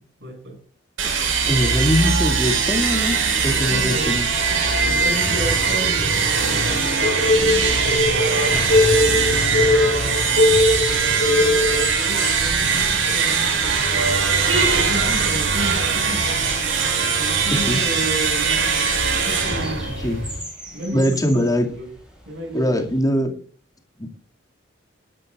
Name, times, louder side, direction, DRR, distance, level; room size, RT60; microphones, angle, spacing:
voice 1, 0.2-0.6 1.6-2.1 3.4-4.2 4.8-8.3 8.9-10.1 10.7-16.3 17.2-19.9 20.7-21.9 22.2-22.7 23.2-23.3, right 1 dB, 65° right, 1 dB, 6.6 m, -33 dB
sound 1, 1.0-20.4, right 5 dB, 85° right, 4.3 m, -21 dB
voice 2, 1.5-4.3 8.5-8.7 17.7-17.8 20.0-20.2 20.9-21.7 22.5-23.3 24.0-24.1, equal, 20° left, 2 dB, 2.3 m, -22 dB
sound 2, 7.0-11.9, left 2 dB, 50° left, 3.7 m, -19 dB
sound 3, 17.8-23.0, equal, 5° right, 6.3 m, -40 dB
19.0 x 11.5 x 2.5 m, 0.41 s
head